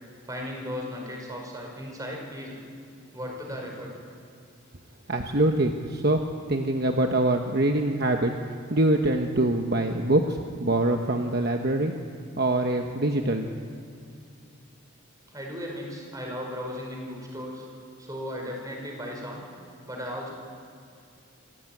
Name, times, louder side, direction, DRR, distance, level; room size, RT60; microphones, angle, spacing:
voice 1, 0.2-2.6 3.1-4.0 15.3-17.6 18.0-19.4 19.9-20.3, equal, 15° right, 0 dB, 5.1 m, -36 dB
voice 2, 5.1-6.2 6.5-11.9 12.4-13.5, right 1 dB, 45° right, 4 dB, 1.1 m, -24 dB
26.5 x 16.0 x 9.2 m, 2.5 s
head